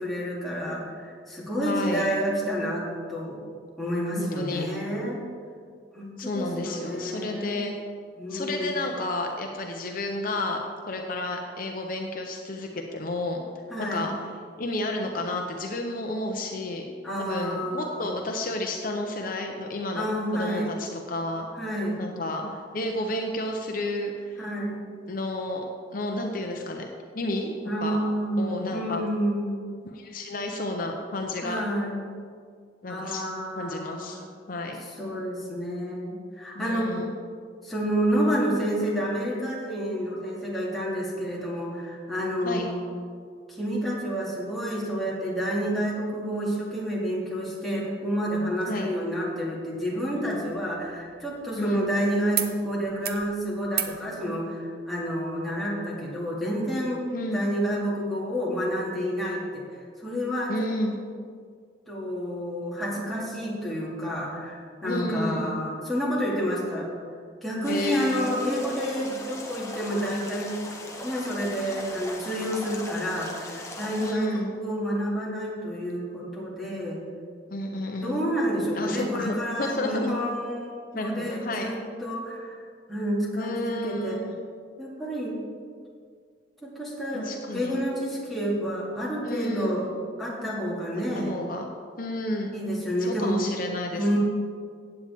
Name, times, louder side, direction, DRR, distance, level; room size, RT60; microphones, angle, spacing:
voice 1, 0.0-3.4 3.8-5.2 5.9-7.6 8.2-8.8 13.7-14.1 17.0-18.2 19.9-20.8 21.6-22.0 24.4-24.8 27.7-29.6 31.4-32.0 32.9-34.2 35.0-37.0 37.6-42.8 43.5-57.0 57.3-60.7 61.9-66.9 67.4-70.5 71.0-77.0 78.0-82.6 82.9-84.3 84.8-85.4 86.6-89.9 90.2-91.3 92.5-93.4 93.9-94.2, equal, ahead, -6 dB, 2.4 m, -29 dB
voice 2, 1.6-2.1 4.1-4.6 6.2-7.7 8.3-13.4 13.8-14.1 14.6-16.9 17.2-20.1 20.3-21.5 22.0-24.4 25.1-25.7 25.9-26.9 27.1-28.0 28.4-29.0 29.8-31.6 32.8-33.2 33.5-34.2 34.5-34.8 36.5-37.1 42.4-42.7 48.6-48.9 51.6-51.9 57.1-57.4 60.5-61.0 64.8-65.6 67.7-68.3 74.0-74.5 77.5-78.2 78.8-80.1 80.9-81.7 83.4-84.4 87.1-87.8 89.2-89.8 91.1-91.6 92.0-92.5 93.0-94.2, left 1 dB, 50° left, 2 dB, 0.8 m, -31 dB
sound 1, 50.2-51.9 52.3-52.5 52.8-53.3 53.7-54.0 55.3-55.4, right 10 dB, 55° right, 0.7 m, -34 dB
sound 2, 67.6-74.1, left 1 dB, 15° left, 1.1 m, -39 dB
15.0 x 9.0 x 3.6 m, 2.1 s
head